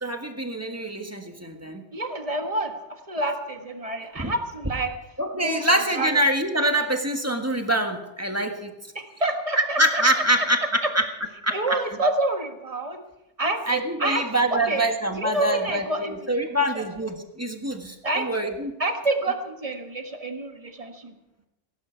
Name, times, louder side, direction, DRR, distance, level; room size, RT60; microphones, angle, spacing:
voice 1, 0.0-1.8 4.1-4.3 5.2-8.7 9.8-10.6 10.9-11.0 11.4-11.8 13.7-18.7, right 1 dB, 10° right, 4 dB, 1.5 m, -25 dB
voice 2, 1.9-4.9 5.3-6.2 8.9-10.5 11.5-13.0 13.4-14.2 14.5-14.8 15.2-16.8 18.0-18.5 18.8-21.1, right 2 dB, 30° right, 5 dB, 1.6 m, -28 dB
17.0 x 16.5 x 4.6 m, 0.93 s
omnidirectional pair, 1.3 m